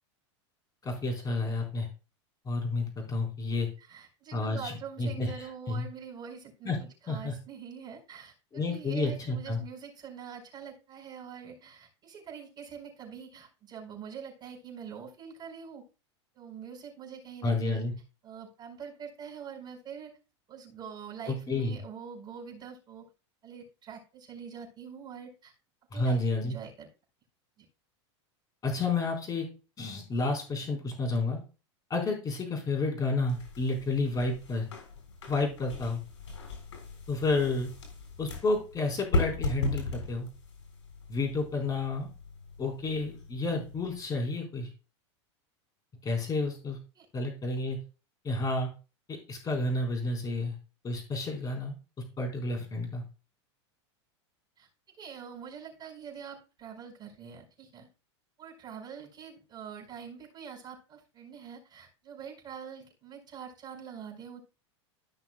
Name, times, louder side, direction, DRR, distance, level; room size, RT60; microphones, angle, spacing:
voice 1, 0.8-1.9 2.4-3.7 4.3-4.7 5.0-5.8 6.6-6.8 7.1-7.3 8.5-9.6 17.4-17.9 21.3-21.8 25.9-26.5 28.6-29.5 29.8-31.4 31.9-34.7 35.3-36.0 37.1-37.7 38.2-40.3 41.1-42.1 42.6-44.7 46.0-46.8 47.1-47.8 48.2-48.7 49.1-50.5 50.8-51.8 52.2-53.0, left 3 dB, 25° left, 2 dB, 4.2 m, -30 dB
voice 2, 3.8-6.8 7.1-15.8 16.3-17.8 18.2-20.2 20.5-23.1 23.4-25.5 25.9-26.9 27.6-27.7 46.9-47.0 54.6-54.7 55.0-57.9 58.4-64.4, right 7 dB, 30° right, -3 dB, 5.0 m, -44 dB
sound 1, 33.3-44.0, left 2 dB, 90° left, 3.5 m, -38 dB
15.5 x 6.0 x 2.3 m, 0.32 s
hypercardioid pair, 110°, 15 cm